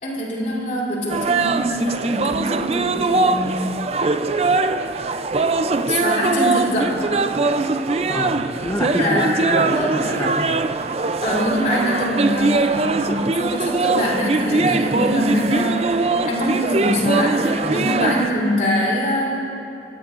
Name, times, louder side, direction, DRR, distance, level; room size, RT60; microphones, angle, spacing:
voice 1, 0.0-3.7 4.0-4.1 5.9-7.0 9.0-10.3 11.2-15.9 16.2-19.4, equal, 45° left, -4 dB, 3.4 m, -23 dB
sound 1, 1.1-18.3, right 3 dB, 35° right, 0.4 m, -21 dB
voice 2, 8.1-10.7 14.6-14.8 17.6-17.9, left 1 dB, 15° left, 3 dB, 0.9 m, -28 dB
25.5 x 17.5 x 2.6 m, 2.9 s
head